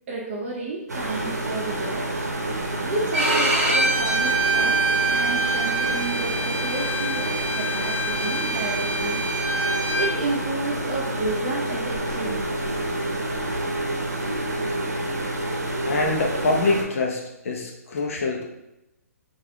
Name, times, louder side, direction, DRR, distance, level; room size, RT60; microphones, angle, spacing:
voice 1, 0.1-2.1 2.7-9.2 10.0-12.5, right 3 dB, 45° right, -2 dB, 0.6 m, -31 dB
sound 1, 0.9-16.8, right 1 dB, 85° right, 0.7 m, -28 dB
Bowed string instrument, 3.1-10.1, right 2 dB, 15° right, 1.1 m, -25 dB
voice 2, 15.9-18.4, left 3 dB, 55° left, 1 dB, 0.7 m, -25 dB
3.4 x 2.5 x 3.3 m, 0.88 s
figure-of-eight pair, 135°, 9 cm